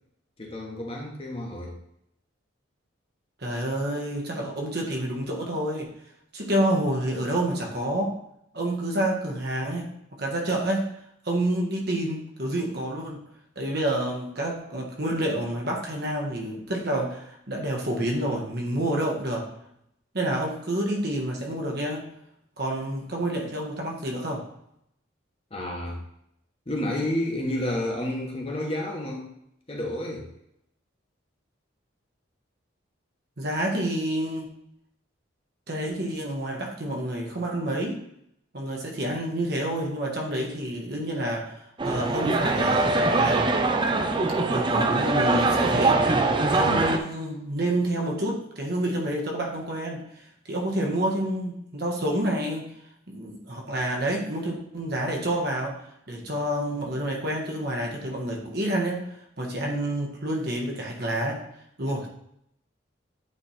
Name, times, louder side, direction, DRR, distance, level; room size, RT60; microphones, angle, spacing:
voice 1, 0.4-1.7 25.5-26.0 26.7-29.3 29.7-30.2, left 1 dB, 30° left, -1 dB, 1.3 m, -30 dB
voice 2, 3.4-5.9 6.3-8.2 8.5-10.9 11.2-13.2 13.5-19.5 20.1-22.1 22.6-24.5 33.4-34.5 35.7-38.0 38.5-43.5 44.5-50.1 50.5-52.7 53.1-59.1 59.4-61.4 61.8-62.1, right 1 dB, 50° right, -1 dB, 1.4 m, -28 dB
sound 1, 41.8-47.0, right 3 dB, 25° right, 0.5 m, -22 dB
8.9 x 3.4 x 4.2 m, 0.75 s
head